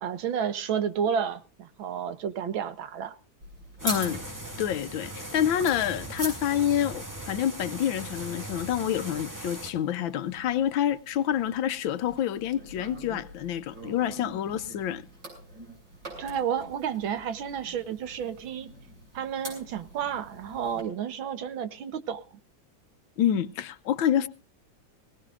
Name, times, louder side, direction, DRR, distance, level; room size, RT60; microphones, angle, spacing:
voice 1, 0.0-3.1 16.2-18.7 19.1-22.2, right 8 dB, 90° right, 1.9 m, -31 dB
sound 1, 3.4-20.8, right 1 dB, 65° right, 7.5 m, -44 dB
voice 2, 3.8-4.2 4.6-15.0 23.2-24.3, left 10 dB, 80° left, 1.6 m, -27 dB
sound 2, 3.8-9.7, right 1 dB, 10° right, 1.6 m, -39 dB
20.0 x 18.5 x 2.5 m
omnidirectional pair, 2.1 m